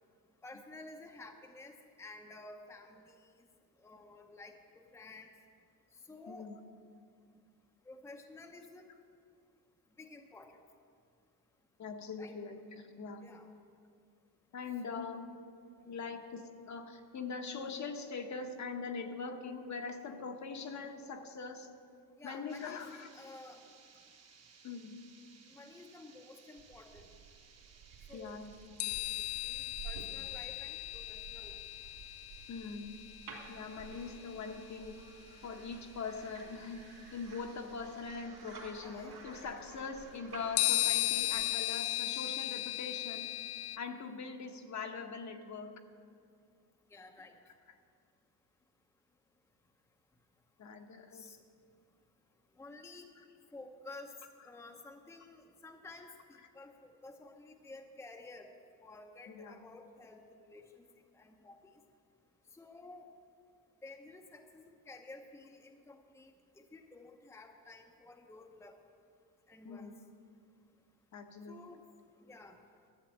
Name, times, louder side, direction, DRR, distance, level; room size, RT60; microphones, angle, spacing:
voice 1, 0.4-3.2 3.8-5.3 6.1-6.5 7.9-8.9 10.0-10.5 12.2-12.4 13.2-13.5 14.9-15.2 22.2-23.6 25.5-27.0 28.1-28.4 29.4-31.6 33.9-34.0 38.8-39.2 39.8-39.9 46.9-47.4 51.1-51.4 52.6-53.1 53.5-54.1 54.4-58.5 58.8-60.9 61.1-61.6 62.5-63.1 63.8-68.7 69.5-70.0 71.5-71.8 72.3-72.6, left 2 dB, 5° left, 3 dB, 0.7 m, -52 dB
voice 2, 6.3-6.6 11.8-13.3 14.5-15.3 15.8-21.7 22.2-23.1 24.6-25.0 28.1-28.6 32.5-33.0 33.5-35.0 35.4-36.8 37.1-43.3 43.8-45.8 50.6-51.3 59.3-59.6 69.6-69.9 71.1-71.6, left 4 dB, 40° left, 5 dB, 1.0 m, -42 dB
sound 1, 22.5-42.0, right 5 dB, 35° right, 1.2 m, -63 dB
sound 2, 26.6-41.4, right 5 dB, 60° right, 3.0 m, -53 dB
sound 3, 28.8-34.4 35.7-35.8 40.6-43.8, left 17 dB, 65° left, 0.5 m, -36 dB
12.0 x 7.5 x 7.0 m, 2.3 s
cardioid pair, 110°, 43 cm